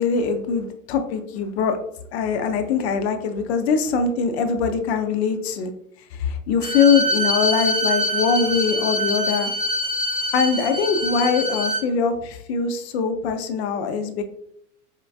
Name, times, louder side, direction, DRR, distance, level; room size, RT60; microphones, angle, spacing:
voice 1, 0.0-1.8 2.1-5.7 6.1-9.5 10.3-14.2, left 5 dB, 45° left, 7 dB, 0.5 m, -22 dB
Bowed string instrument, 6.6-11.8, equal, 75° right, 1.5 m, -24 dB
4.4 x 2.4 x 2.3 m, 0.70 s
hypercardioid pair, 105°, 47 cm